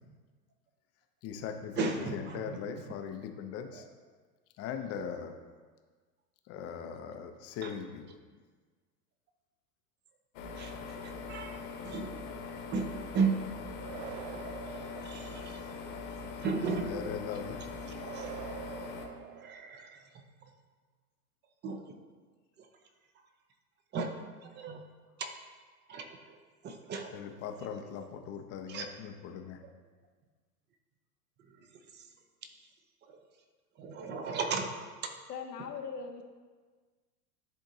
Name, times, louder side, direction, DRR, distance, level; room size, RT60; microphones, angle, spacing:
voice 1, 1.2-3.9 4.6-5.3 6.5-8.0 16.6-17.6 27.1-29.6, left 7 dB, 30° left, 6 dB, 0.6 m, -40 dB
voice 2, 1.8-2.6 7.6-7.7 10.6-12.2 12.7-13.4 15.0-15.7 16.4-17.0 17.8-18.3 19.4-20.0 21.6-21.8 23.9-24.8 25.2-25.3 25.9-26.4 26.6-27.2 27.6-27.7 28.7-28.9 31.9-32.0 33.8-34.7, right 4 dB, 25° right, 5 dB, 0.6 m, -35 dB
sound 1, 10.3-19.1, left 4 dB, 55° left, 1.2 m, -42 dB
sound 2, 13.8-15.9 18.0-20.0, right 10 dB, 75° right, 0.6 m, -46 dB
voice 3, 35.3-36.2, left 5 dB, 80° left, 3 dB, 0.8 m, -40 dB
10.5 x 3.6 x 2.7 m, 1.4 s
hypercardioid pair, 100°, 47 cm